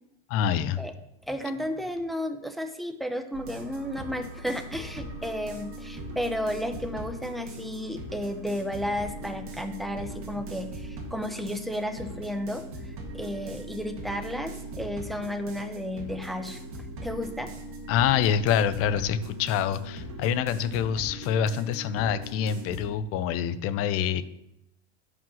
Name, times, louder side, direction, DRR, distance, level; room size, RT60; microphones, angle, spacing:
voice 1, 0.3-0.8 17.9-24.2, left 8 dB, 45° left, 14 dB, 0.5 m, -26 dB
voice 2, 1.3-17.5, equal, ahead, 8 dB, 0.6 m, -33 dB
sound 1, 3.3-22.9, right 1 dB, 40° right, 1.8 m, -40 dB
5.4 x 4.9 x 6.3 m, 0.83 s
hypercardioid pair, 90°, 33 cm